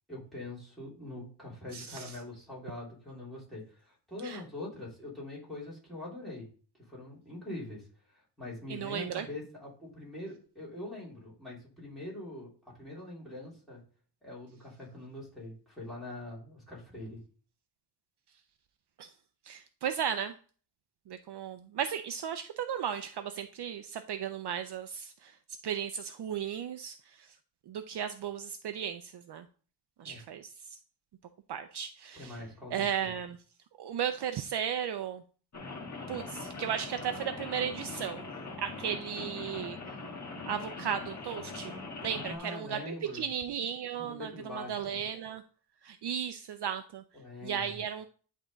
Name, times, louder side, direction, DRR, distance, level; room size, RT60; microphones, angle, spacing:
voice 1, 0.1-6.5 6.8-13.8 14.2-17.2 30.0-30.2 32.1-33.2 42.1-43.3 43.9-45.0 47.1-47.8, left 2 dB, ahead, -7 dB, 3.5 m, -43 dB
voice 2, 1.7-2.1 4.2-4.4 8.7-9.2 19.0-19.1 19.4-20.3 21.1-25.3 25.6-27.3 27.7-29.4 30.0-30.8 31.5-32.3 32.7-33.4 33.8-35.2 36.1-38.2 38.6-40.0 40.5-44.3 44.5-45.4 45.8-47.0 47.4-48.1, right 8 dB, 60° right, 8 dB, 0.5 m, -35 dB
Rain, 35.5-42.4, left 3 dB, 35° left, 1.4 m, -41 dB
10.0 x 3.7 x 3.9 m, 0.41 s
wide cardioid pair, 160°, 47 cm